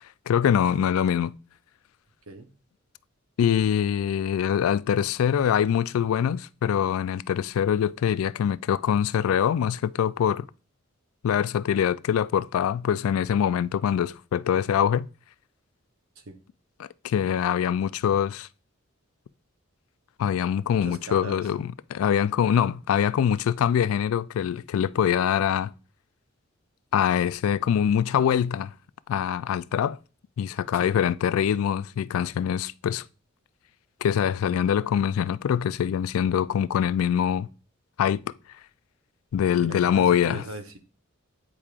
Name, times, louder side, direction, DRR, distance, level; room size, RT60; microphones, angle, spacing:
voice 1, 0.0-1.3 3.4-10.4 11.2-15.1 16.8-18.5 20.2-25.7 26.9-28.7 29.1-30.0 30.4-33.0 34.0-37.5 38.0-38.2 39.3-40.4, left 8 dB, 85° left, 0.3 m, -24 dB
voice 2, 20.8-21.5 30.7-30.9 39.6-40.8, right 2 dB, 85° right, 0.9 m, -39 dB
8.7 x 4.8 x 2.4 m
head